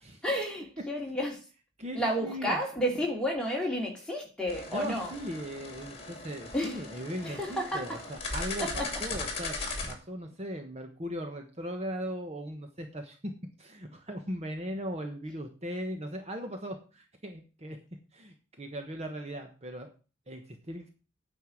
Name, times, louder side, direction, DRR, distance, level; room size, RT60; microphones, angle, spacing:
voice 1, 0.2-1.4 1.9-5.1 6.5-6.8 7.2-8.0 8.6-9.0, equal, 5° left, 2.7 m, -31 dB
voice 2, 1.8-2.6 4.7-9.6 9.9-13.3 13.6-17.8 18.1-19.9 20.3-20.9, equal, 35° right, 1.2 m, -38 dB
sound 1, 4.5-9.9, left 3 dB, 30° left, 2.4 m, -38 dB
9.3 x 5.6 x 7.6 m
head